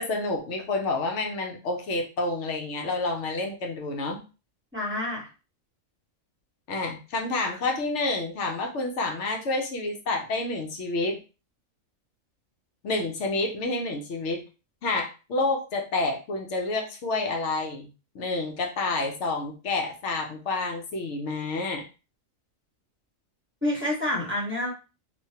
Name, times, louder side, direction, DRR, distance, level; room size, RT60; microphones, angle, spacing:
voice 1, 0.0-4.2 6.7-11.2 12.8-14.5 14.8-17.9 18.1-21.8, left 2 dB, 65° left, 3 dB, 0.9 m, -29 dB
voice 2, 4.7-5.3 23.6-24.7, left 1 dB, 10° right, -4 dB, 0.8 m, -28 dB
3.2 x 2.2 x 2.7 m, 0.32 s
omnidirectional pair, 1.4 m